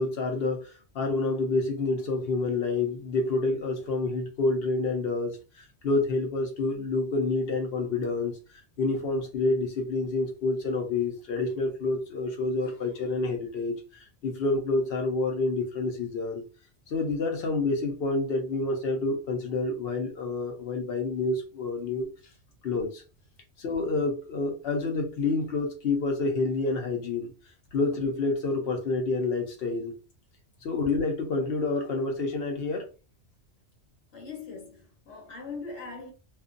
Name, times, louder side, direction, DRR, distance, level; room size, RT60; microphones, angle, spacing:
voice 1, 0.0-16.4 16.9-22.1 22.6-23.0 23.6-27.3 27.7-29.9 30.6-32.9, left 3 dB, 65° left, 0.8 m, -28 dB
voice 2, 34.1-36.1, left 4 dB, 90° left, 1.1 m, -40 dB
2.4 x 2.2 x 2.4 m
omnidirectional pair, 1.2 m